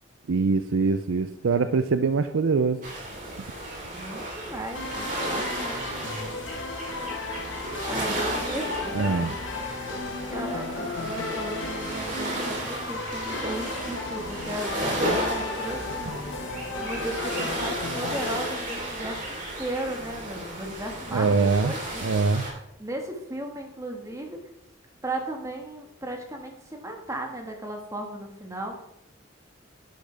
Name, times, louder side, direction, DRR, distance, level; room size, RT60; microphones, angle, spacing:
voice 1, 0.3-2.8 8.9-9.3 21.1-21.7 22.0-22.4, right 4 dB, 80° right, 10 dB, 0.5 m, -23 dB
sound 1, 2.8-22.5, right 1 dB, 40° right, 3.7 m, -34 dB
voice 2, 3.9-5.9 7.8-9.9 10.3-22.2 22.8-24.4 25.0-28.8, right 1 dB, 15° right, 2 dB, 1.7 m, -36 dB
sound 2, 4.7-18.5, left 3 dB, 70° left, 1.6 m, -34 dB
11.5 x 10.5 x 3.5 m, 0.84 s
head